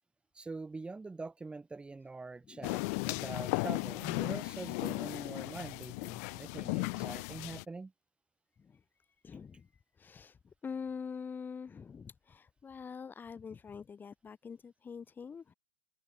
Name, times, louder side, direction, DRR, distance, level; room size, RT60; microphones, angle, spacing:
voice 1, 0.3-7.9, right 3 dB, 10° right, 2.0 m, -44 dB
voice 2, 2.5-3.0 4.8-5.0 8.6-8.8 9.2-9.7 10.0-15.5, left 6 dB, 15° left, 3.5 m, -45 dB
sound 1, 2.6-7.6, left 30 dB, 45° left, 0.8 m, -36 dB
hypercardioid pair, 115°, 12 cm